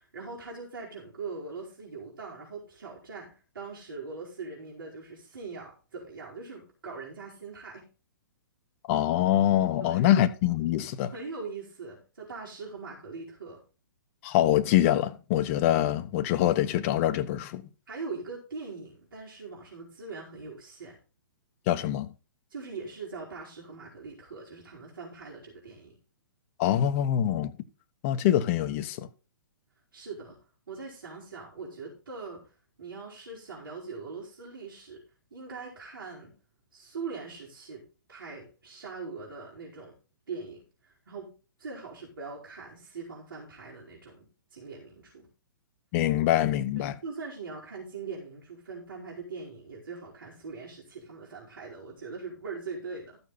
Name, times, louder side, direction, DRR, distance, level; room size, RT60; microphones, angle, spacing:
voice 1, 0.0-7.9 9.8-10.0 11.1-13.6 17.9-21.0 22.5-26.0 29.9-30.4 30.7-32.4 32.8-35.0 35.3-36.3 36.7-37.8 38.1-39.9 40.3-41.3 41.6-44.2 44.5-45.3 46.8-53.2, right 4 dB, 70° right, 4.7 m, -41 dB
voice 2, 8.9-11.1 14.2-17.6 21.7-22.1 26.6-27.5 28.0-29.1 45.9-46.9, left 12 dB, 35° left, 1.1 m, -24 dB
14.0 x 7.1 x 4.2 m
figure-of-eight pair, 120°, 12 cm